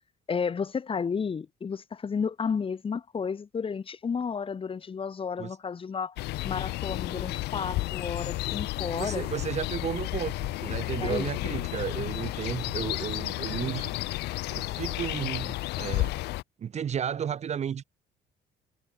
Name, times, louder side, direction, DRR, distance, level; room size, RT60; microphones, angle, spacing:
voice 1, 0.3-6.1 6.4-9.2 11.0-11.3, left 6 dB, 30° left, 3.1 m, -32 dB
sound 1, 6.2-16.4, left 19 dB, 80° left, 1.0 m, -32 dB
voice 2, 8.9-14.0 14.5-16.2 16.6-17.8, right 8 dB, 40° right, 1.2 m, -33 dB
cardioid pair, 110°, 17 cm